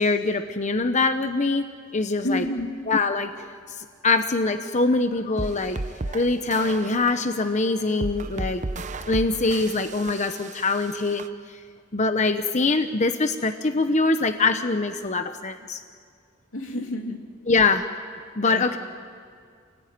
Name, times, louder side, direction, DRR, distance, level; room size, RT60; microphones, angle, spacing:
voice 1, 0.0-2.4 2.9-3.3 4.0-8.6 9.1-11.2 11.9-15.8 17.5-17.9 18.4-18.8, left 3 dB, 35° left, 8 dB, 0.9 m, -23 dB
voice 2, 2.2-2.8 9.4-9.6 16.5-17.2 17.5-17.6 18.4-18.8, left 1 dB, 85° left, 3 dB, 2.9 m, -30 dB
sound 1, 5.4-11.3, right 2 dB, 40° right, 0.7 m, -34 dB
28.5 x 19.5 x 9.5 m, 2.1 s
head